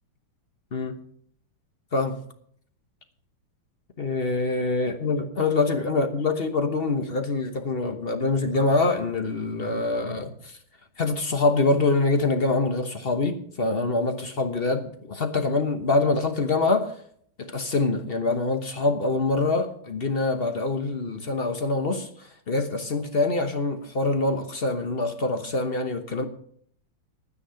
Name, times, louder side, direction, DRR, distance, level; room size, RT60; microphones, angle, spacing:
voice 1, 4.0-10.6 11.0-16.9 17.4-26.3, left 3 dB, 40° left, 6 dB, 0.8 m, -25 dB
11.0 x 9.6 x 5.7 m, 0.63 s
omnidirectional pair, 2.4 m